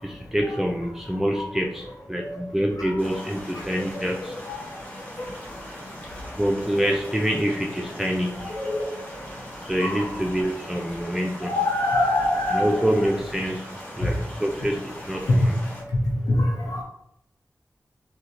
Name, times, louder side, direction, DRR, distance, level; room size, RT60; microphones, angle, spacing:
voice 1, 0.0-4.4 5.5-5.6 6.4-8.6 9.6-11.6 12.5-15.6, equal, 5° right, 0 dB, 0.3 m, -26 dB
sound 1, 3.0-15.8, equal, 25° left, 1.2 m, -40 dB
voice 2, 8.5-8.8 9.8-10.0 11.4-12.7 16.4-16.8, left 2 dB, 80° left, -2 dB, 0.7 m, -24 dB
4.2 x 2.1 x 2.5 m, 0.76 s
wide cardioid pair, 75°, 6 cm